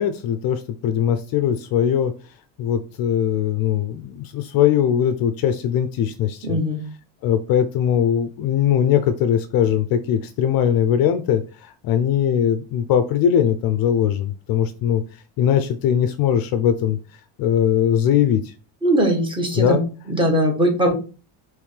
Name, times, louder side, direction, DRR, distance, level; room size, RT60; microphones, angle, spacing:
voice 1, 0.0-2.1 2.6-6.6 7.2-15.0 15.4-17.0 17.4-18.5 19.5-19.8, left 9 dB, 50° left, 10 dB, 0.5 m, -20 dB
voice 2, 6.4-6.8 18.8-19.8 20.1-21.0, right 1 dB, 10° right, 2 dB, 1.1 m, -20 dB
5.2 x 3.1 x 3.2 m, 0.35 s
cardioid pair, 160°, 46 cm